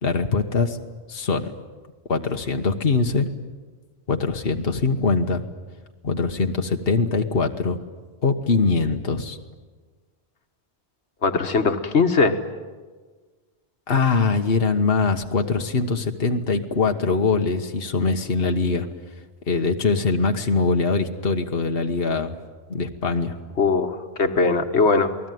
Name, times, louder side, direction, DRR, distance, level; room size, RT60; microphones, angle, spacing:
voice 1, 0.0-0.8 1.1-1.5 2.1-3.3 4.1-5.4 6.0-7.8 8.2-9.4 13.9-18.9 19.5-22.4 22.7-23.3, left 4 dB, 60° left, 4 dB, 1.5 m, -22 dB
voice 2, 11.2-12.4 23.6-25.3, left 4 dB, 85° left, 6 dB, 1.7 m, -20 dB
28.0 x 19.5 x 9.4 m, 1.4 s
omnidirectional pair, 1.1 m